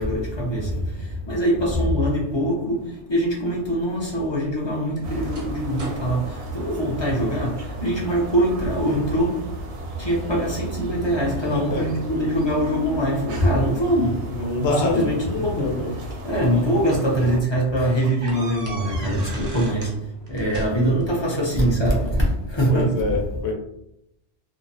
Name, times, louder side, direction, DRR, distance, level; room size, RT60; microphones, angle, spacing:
voice 1, 0.0-9.5 10.0-14.3 14.6-23.2, equal, 35° left, 0.5 m, -23 dB
sound 1, 4.1-7.5 7.9-8.3 8.6-9.2 9.7-10.4 11.0-12.4 13.6-13.7 14.9-16.3 16.9-17.0 17.3-17.4 18.0-20.0 20.3-21.1, right 2 dB, 45° right, 0.6 m, -38 dB
sound 2, 5.0-17.4, right 2 dB, 85° right, 0.9 m, -34 dB
voice 2, 11.5-11.9 14.3-15.9 22.7-23.5, left 2 dB, 75° left, 0.9 m, -26 dB
2.6 x 2.1 x 2.6 m
omnidirectional pair, 1.2 m